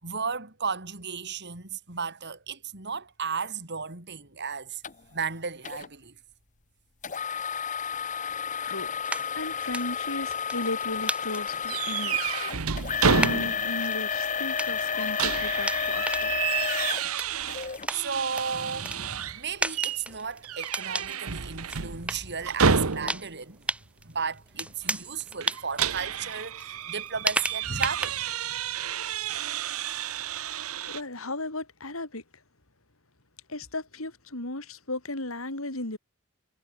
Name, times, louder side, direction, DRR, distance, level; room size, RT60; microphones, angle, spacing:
voice 1, 0.0-4.8 5.1-6.2 17.3-17.5 17.9-23.7 24.0-28.6, right 5 dB, 50° right, 4.5 m, -34 dB
sound 1, 4.8-4.9 5.6-5.9 7.0-17.9 18.5-18.6 19.2-19.3, left 6 dB, 35° left, 1.5 m, -31 dB
sound 2, 9.0-28.5, right 1 dB, 5° right, 1.8 m, -35 dB
voice 2, 9.3-12.4 13.0-16.3 30.8-32.2 33.5-36.0, left 2 dB, 65° left, 4.6 m, -35 dB
sound 3, 11.7-13.8 14.1-14.2 14.8-19.4 19.7-20.0 20.4-23.4 25.4-31.0, right 6 dB, 75° right, 1.2 m, -30 dB
head